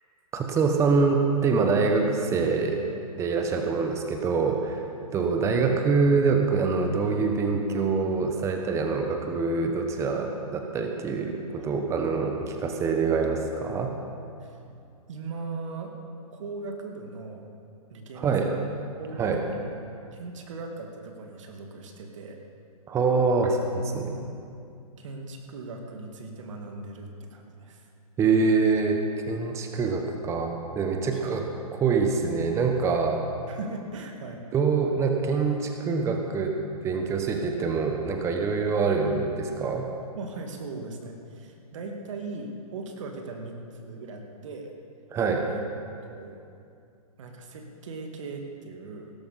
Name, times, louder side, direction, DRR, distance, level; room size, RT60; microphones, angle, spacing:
voice 1, 0.3-2.8 3.1-4.8 5.1-14.0 18.2-18.5 19.2-19.4 22.9-24.1 28.2-29.0 29.3-31.4 31.7-33.2 34.5-36.6 36.8-39.9 45.1-45.5, right 4 dB, 15° right, 4 dB, 1.0 m, -25 dB
voice 2, 15.1-15.9 16.3-17.5 17.9-18.6 19.0-19.8 20.1-22.4 24.0-24.4 25.0-27.9 31.1-31.4 33.5-34.4 40.2-44.7 45.5-45.6 46.0-46.4 47.2-49.1, right 3 dB, 55° right, 3 dB, 2.0 m, -39 dB
17.0 x 13.5 x 4.1 m, 2.5 s
hypercardioid pair, 130°, 19 cm